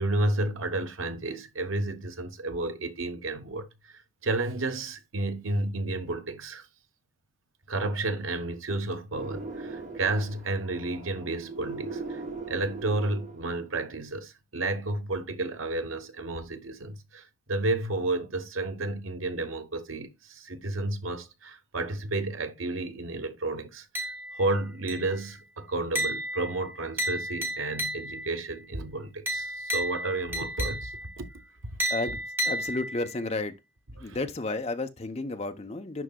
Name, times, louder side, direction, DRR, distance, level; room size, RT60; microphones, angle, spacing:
voice 1, 0.0-3.7 4.2-6.6 7.7-12.2 12.5-23.9 24.4-30.9 31.2-31.3 34.0-34.2, right 2 dB, 80° right, 1.0 m, -31 dB
sound 1, 9.1-13.7, right 3 dB, 35° right, 1.0 m, -39 dB
sound 2, 23.9-24.5 24.9-25.3 25.9-28.4 29.3-31.2 31.8-33.2, equal, 10° right, 1.4 m, -32 dB
voice 2, 32.4-33.5 34.0-36.0, left 2 dB, 30° left, 0.6 m, -32 dB
11.0 x 3.8 x 2.2 m
head